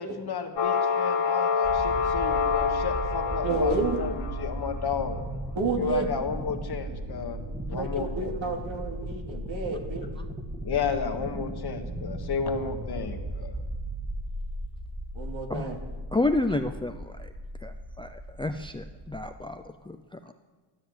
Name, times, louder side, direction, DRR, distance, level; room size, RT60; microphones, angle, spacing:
voice 1, 0.0-5.2 5.8-7.4 7.7-8.4 10.6-13.6, left 6 dB, 50° left, 6 dB, 1.6 m, -32 dB
sound 1, 0.6-4.6, left 6 dB, 75° left, 2.7 m, -27 dB
sound 2, 1.6-19.4, right 1 dB, 10° right, 1.9 m, -36 dB
voice 2, 3.4-4.0 5.5-6.0 7.7-10.1 15.1-15.8, right 3 dB, 75° right, 1 dB, 2.8 m, -30 dB
voice 3, 16.1-17.3 17.6-20.3, left 2 dB, 10° left, 8 dB, 0.5 m, -30 dB
13.0 x 12.5 x 7.9 m, 1.3 s
wide cardioid pair, 125°, 48 cm